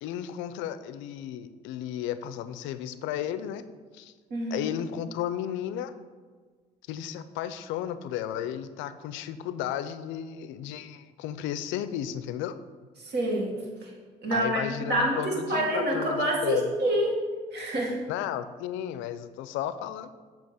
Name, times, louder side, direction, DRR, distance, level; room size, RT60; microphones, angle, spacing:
voice 1, 0.0-3.6 3.9-4.1 4.5-5.9 6.9-12.6 14.3-16.7 18.1-20.1, left 10 dB, 75° left, 12 dB, 0.4 m, -33 dB
voice 2, 4.3-4.7 13.0-13.6 13.8-13.9 14.2-17.1 17.5-17.9, right 1 dB, 60° right, -1 dB, 1.8 m, -27 dB
7.1 x 3.0 x 5.8 m, 1.5 s
hypercardioid pair, 65°, 20 cm